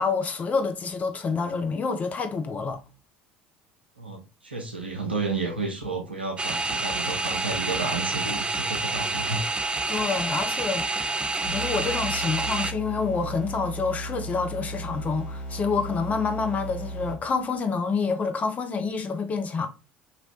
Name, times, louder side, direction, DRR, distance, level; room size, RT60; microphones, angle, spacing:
voice 1, 0.0-2.8 9.9-10.9 11.4-19.7, left 4 dB, 30° left, 0.6 m, -27 dB
voice 2, 4.0-9.4, right 4 dB, 85° right, 0.6 m, -32 dB
sound 1, 6.4-12.7, right 3 dB, 20° right, 0.3 m, -28 dB
sound 2, 11.4-17.5, right 1 dB, 60° left, 1.4 m, -36 dB
3.0 x 2.9 x 2.9 m
figure-of-eight pair, 65°, 5 cm